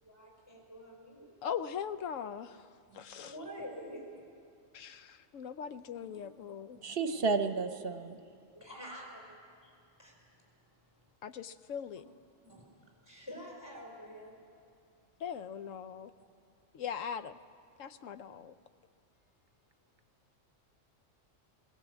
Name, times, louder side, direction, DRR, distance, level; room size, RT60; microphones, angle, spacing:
voice 1, 0.0-1.4 2.9-4.2 6.0-6.3 6.8-7.0 8.5-9.3 9.6-10.2 12.4-12.7 13.0-14.3, equal, 15° left, -1 dB, 4.9 m, -48 dB
voice 2, 1.4-3.3 4.7-6.8 11.2-12.0 15.2-16.1 16.7-17.4 17.8-18.6, left 8 dB, 80° left, 12 dB, 1.1 m, -40 dB
voice 3, 6.8-8.2, right 4 dB, 50° right, 8 dB, 1.0 m, -31 dB
20.5 x 18.5 x 8.1 m, 2.4 s
omnidirectional pair, 1.3 m